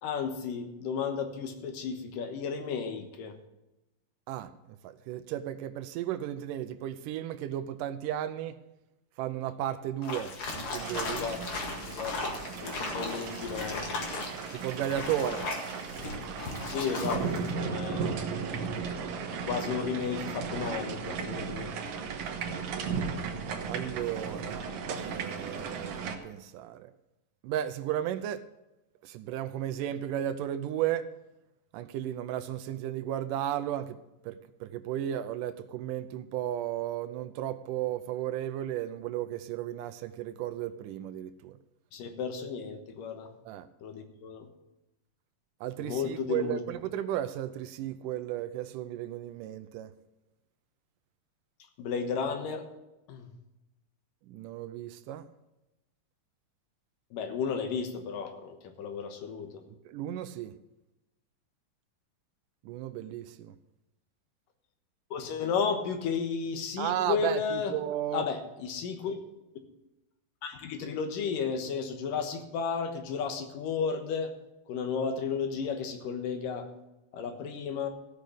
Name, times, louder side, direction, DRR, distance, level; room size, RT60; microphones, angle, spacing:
voice 1, 0.0-3.4 11.1-11.4 11.9-13.9 16.6-18.1 19.4-21.7 41.9-43.3 43.8-44.5 45.8-46.6 51.8-52.7 53.1-53.3 57.1-59.6 65.1-67.7 68.1-69.2 70.4-74.3 74.7-76.7 77.1-77.9, left 6 dB, 80° left, 3.0 m, -33 dB
voice 2, 4.3-8.6 9.2-11.2 14.5-15.5 23.7-24.7 25.0-26.9 27.4-28.5 29.0-31.1 31.7-41.6 43.5-43.7 45.6-49.9 54.3-55.3 59.9-60.6 62.6-63.6 66.8-68.3, right 11 dB, 80° right, 2.2 m, -34 dB
sound 1, 10.0-17.5, left 3 dB, 45° left, 2.4 m, -37 dB
sound 2, 10.8-26.2, right 5 dB, 65° right, 2.3 m, -36 dB
15.5 x 6.5 x 6.7 m
omnidirectional pair, 3.9 m